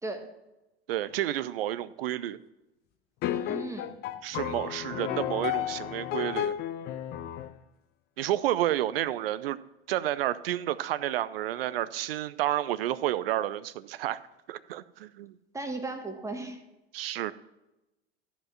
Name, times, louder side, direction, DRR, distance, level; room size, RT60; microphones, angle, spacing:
voice 1, 0.9-2.4 4.2-6.6 8.2-9.6 9.9-14.2 14.5-15.3 16.9-17.3, right 13 dB, 60° right, 17 dB, 0.6 m, -30 dB
sound 1, 3.2-7.6, left 11 dB, 30° left, 0.5 m, -32 dB
voice 2, 3.3-3.9 15.5-16.6, right 2 dB, 10° right, 5 dB, 1.5 m, -36 dB
14.0 x 5.2 x 5.9 m, 0.97 s
figure-of-eight pair, 85°, 33 cm